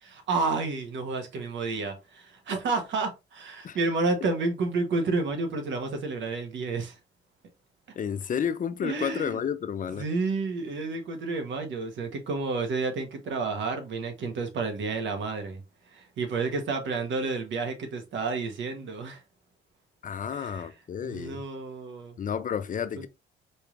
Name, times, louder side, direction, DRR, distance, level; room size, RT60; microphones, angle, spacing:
voice 1, 0.0-7.0 8.8-9.4 9.9-15.6 15.9-19.2 20.3-20.7 21.0-22.2 23.0-23.1, right 3 dB, 70° right, 1.1 m, -30 dB
voice 2, 8.0-10.1 20.0-21.4 22.2-23.1, left 7 dB, 40° left, 0.5 m, -31 dB
4.4 x 3.3 x 2.4 m
cardioid pair, 90°, 20 cm